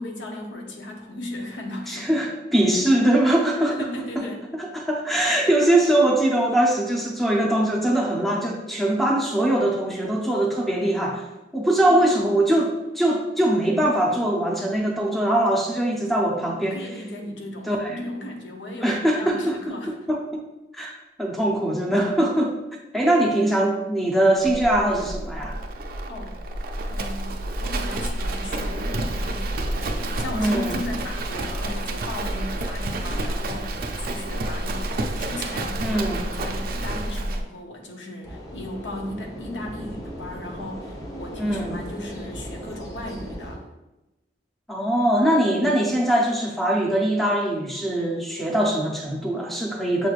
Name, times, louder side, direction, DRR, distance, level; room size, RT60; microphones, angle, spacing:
voice 1, 0.0-2.3 3.7-4.4 11.9-12.1 16.3-19.9 26.1-26.4 26.9-43.6, left 1 dB, 75° left, 1 dB, 0.7 m, -36 dB
voice 2, 1.9-3.9 4.2-4.3 4.6-11.3 11.5-16.8 17.7-18.0 18.8-19.6 19.9-20.2 20.7-20.9 21.2-22.6 22.9-25.6 30.3-30.7 35.8-36.2 41.4-41.7 44.7-50.1, right 1 dB, ahead, -2 dB, 0.5 m, -22 dB
Livestock farm animals working animals, 24.4-37.4, right 1 dB, 50° right, 0.4 m, -29 dB
sound 1, 38.2-43.6, equal, 20° left, 1.0 m, -37 dB
7.0 x 3.1 x 2.4 m, 1.0 s
head